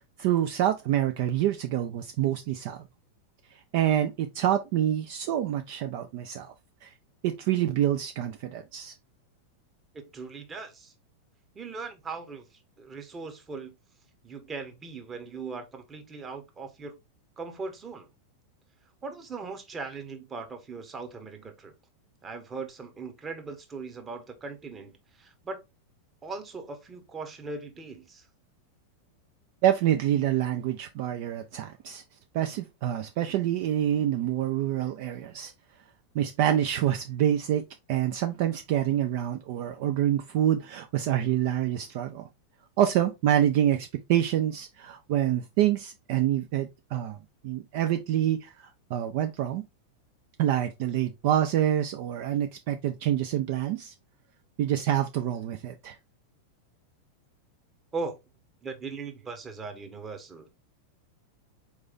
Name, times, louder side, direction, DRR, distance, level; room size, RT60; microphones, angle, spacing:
voice 1, 0.2-2.8 3.5-6.5 6.8-6.9 7.2-8.9 29.6-32.0 32.3-35.5 36.1-42.3 42.8-47.2 47.4-49.6 50.4-53.9 54.6-56.0, right 11 dB, 50° right, 0.4 m, -27 dB
voice 2, 9.9-10.9 11.5-13.7 14.2-17.0 17.4-18.1 19.0-21.7 22.2-25.6 26.2-28.3 57.9-58.2 58.6-60.5, right 4 dB, 20° right, 1.1 m, -39 dB
4.2 x 3.3 x 3.4 m
figure-of-eight pair, 90°, 0 cm